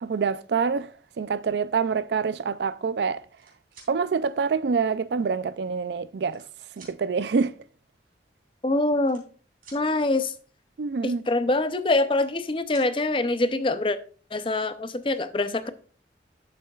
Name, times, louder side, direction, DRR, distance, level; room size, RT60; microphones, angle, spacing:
voice 1, 0.0-3.2 3.9-6.4 6.8-7.5 10.8-11.2, right 5 dB, 75° right, 0.4 m, -26 dB
sound 1, 3.1-3.9 4.9-5.0 5.8-6.5 6.7-7.0 8.1-8.2 8.4-8.6 9.0-9.8 11.7-12.4 12.7-12.9 14.4-14.5 14.8-15.2, right 4 dB, 50° right, 3.1 m, -51 dB
voice 2, 8.6-9.2 9.7-10.3 11.0-14.0 14.3-15.7, left 2 dB, 30° left, 0.5 m, -24 dB
11.5 x 7.4 x 2.4 m
head